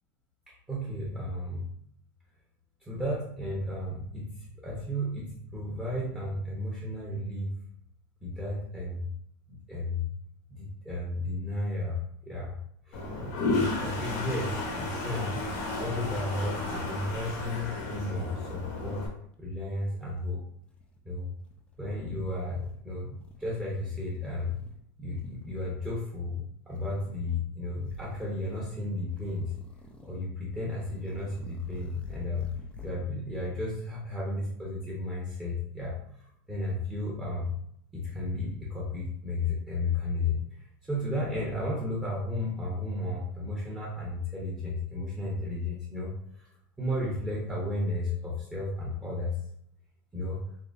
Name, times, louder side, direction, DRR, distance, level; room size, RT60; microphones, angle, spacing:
voice 1, 0.7-1.7 2.8-4.3 4.6-7.5 8.2-9.0 9.5-10.1 10.8-12.5 12.9-13.1 13.4-15.4 15.8-19.1 19.4-20.4 21.0-21.3 21.8-24.6 25.0-26.4 26.7-29.5 30.0-32.5 32.8-35.9 36.5-37.5 37.9-40.4 40.9-46.1 46.8-49.3 50.1-50.4, left 2 dB, 10° right, -6 dB, 0.9 m, -33 dB
Toilet flush, 12.9-19.1, left 2 dB, 50° left, 1.0 m, -33 dB
sound 1, 19.4-19.5 19.8-21.0 21.4-21.8 22.3-22.8 23.2-24.8 25.1-25.6 26.7-27.4 27.8-28.7 29.1-30.3 30.7-33.0, left 1 dB, 10° left, 0.4 m, -48 dB
3.7 x 2.8 x 2.6 m, 0.68 s
supercardioid pair, 140°, 10 cm